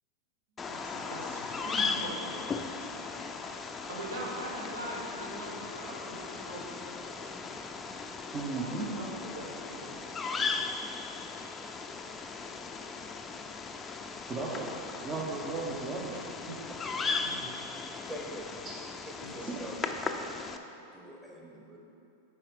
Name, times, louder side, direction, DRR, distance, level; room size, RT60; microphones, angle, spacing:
Bird vocalization bird call bird song, 0.6-20.6, left 4 dB, 20° left, 0.5 m, -37 dB
voice 1, 0.7-3.0 3.9-6.6 8.6-9.9 15.6-16.6 17.2-17.7 19.2-19.5, right 1 dB, 80° right, -3 dB, 1.6 m, -42 dB
voice 2, 8.3-8.9 14.3-14.7 15.0-16.1, right 3 dB, 30° right, -3 dB, 0.9 m, -35 dB
voice 3, 18.1-18.5 19.0-19.8 20.1-21.8, equal, 10° right, -3 dB, 1.2 m, -45 dB
7.5 x 4.9 x 4.8 m, 2.8 s
hypercardioid pair, 100°, 0 cm